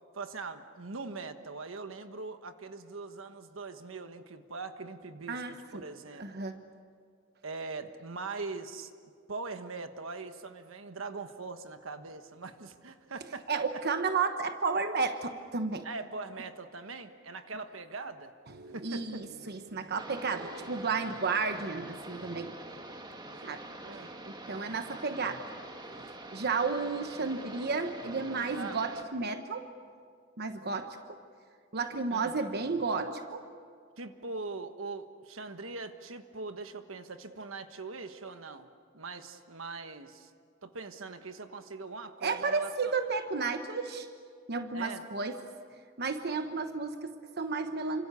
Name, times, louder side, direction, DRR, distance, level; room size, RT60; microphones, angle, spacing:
voice 1, 0.1-6.4 7.4-8.9 9.3-13.6 15.8-18.3 18.7-19.2 23.8-24.1 28.6-28.8 32.1-32.5 34.0-38.7 38.9-40.3 40.6-42.9 44.7-45.0, right 4 dB, 75° right, 8 dB, 1.4 m, -41 dB
voice 2, 5.3-5.9 6.2-6.6 13.5-15.9 18.5-22.6 23.4-23.7 24.3-25.4 25.9-29.7 30.4-31.2 31.7-33.4 42.2-44.1 44.5-45.4 46.0-48.1, right 4 dB, 55° right, 7 dB, 1.2 m, -33 dB
sound 1, 20.0-29.0, right 2 dB, 20° right, 1.7 m, -45 dB
28.5 x 26.0 x 6.9 m, 2.1 s
head